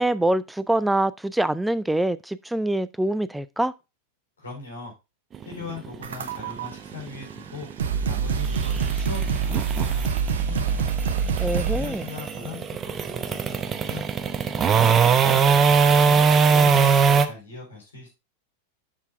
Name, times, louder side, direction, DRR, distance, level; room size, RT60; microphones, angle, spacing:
voice 1, 0.0-3.7 11.4-12.0, right 1 dB, 5° right, 0.4 m, -24 dB
voice 2, 4.4-4.9 5.4-7.7 8.1-10.9 11.7-14.0 14.5-16.2 16.5-18.1, left 4 dB, 75° left, 4.1 m, -39 dB
sound 1, 5.3-17.3, right 6 dB, 25° right, 0.8 m, -21 dB
sound 2, 6.0-6.7 7.4-7.5 7.8-12.0, right 6 dB, 70° right, 1.0 m, -25 dB
7.2 x 5.8 x 3.5 m
figure-of-eight pair, 90°, 0 cm